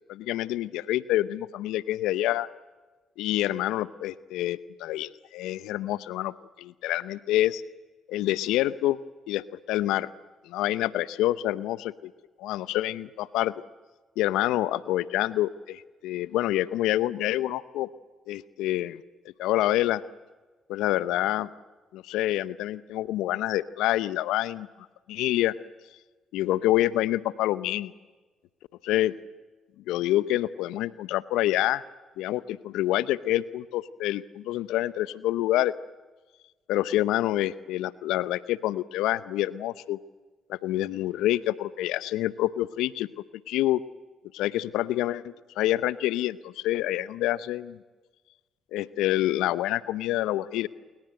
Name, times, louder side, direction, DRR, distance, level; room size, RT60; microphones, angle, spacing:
voice 1, 0.1-2.5 3.2-7.6 8.1-9.0 9.3-10.1 10.4-12.1 12.4-13.5 14.2-17.9 18.3-19.0 19.4-20.0 20.7-21.5 21.9-24.7 25.1-25.5 26.3-27.9 28.8-29.1 29.9-31.8 32.2-35.7 36.7-40.0 40.5-43.1 43.5-43.8 44.3-47.8 48.7-50.7, left 14 dB, 80° left, 17 dB, 0.8 m, -27 dB
28.5 x 22.5 x 7.8 m, 1.3 s
hypercardioid pair, 55°, 0 cm